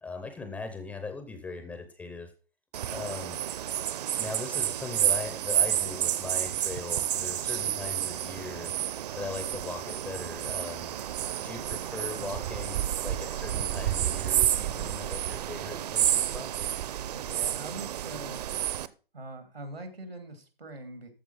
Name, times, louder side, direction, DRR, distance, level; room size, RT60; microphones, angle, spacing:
voice 1, 0.0-2.3 2.9-3.4 4.2-8.8 9.1-10.9 11.4-16.5, left 3 dB, 5° left, 8 dB, 0.4 m, -39 dB
sound 1, 2.7-18.9, right 11 dB, 45° right, 0.6 m, -30 dB
voice 2, 17.1-18.5 19.1-21.1, right 2 dB, 85° right, 7 dB, 2.9 m, -42 dB
13.5 x 4.7 x 5.5 m, 0.37 s
figure-of-eight pair, 130°, 29 cm